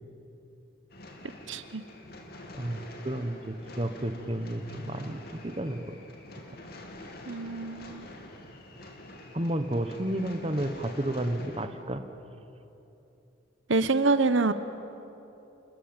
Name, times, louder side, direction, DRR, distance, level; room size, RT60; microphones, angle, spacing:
sound 1, 0.9-11.7, left 1 dB, 50° left, 2.9 m, -46 dB
voice 1, 1.5-1.8 7.2-8.2 13.7-14.5, right 3 dB, 75° right, 11 dB, 1.0 m, -26 dB
voice 2, 2.5-6.0 9.3-12.0, right 1 dB, 30° right, 8 dB, 1.2 m, -32 dB
28.5 x 21.0 x 9.0 m, 3.0 s
head